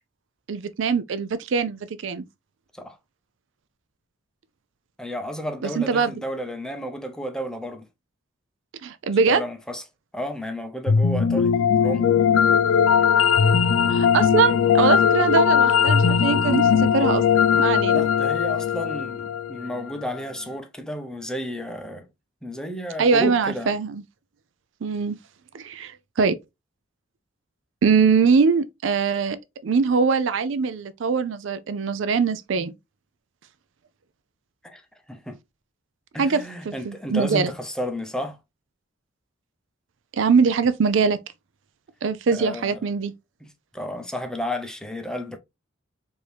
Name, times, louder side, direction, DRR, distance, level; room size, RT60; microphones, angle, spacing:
voice 1, 0.5-2.2 5.6-6.1 8.8-9.4 13.9-17.2 17.6-18.1 23.0-24.0 24.8-25.2 25.5-26.3 27.8-29.4 29.6-32.7 36.2-37.5 40.1-41.2 42.0-43.1, right 5 dB, 70° right, 0.4 m, -22 dB
voice 2, 5.0-7.9 9.3-9.8 10.1-11.5 11.8-12.1 15.2-15.3 17.9-22.1 22.4-23.7 34.6-34.8 35.1-35.4 36.1-38.4 42.3-42.8 43.4-43.5 43.7-45.4, equal, 5° left, 0.6 m, -32 dB
sound 1, 10.9-20.0, left 7 dB, 85° left, 0.4 m, -19 dB
4.6 x 2.7 x 3.3 m
head